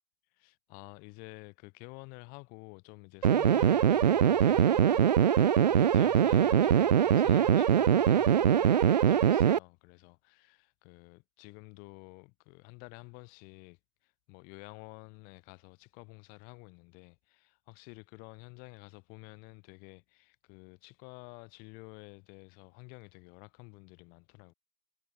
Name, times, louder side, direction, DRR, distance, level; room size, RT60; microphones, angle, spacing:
voice 1, 0.2-24.5, left 31 dB, 25° left, 4.7 m, -51 dB
sound 1, 3.2-9.6, right 9 dB, 35° right, 0.4 m, -23 dB
hypercardioid pair, 160°, 36 cm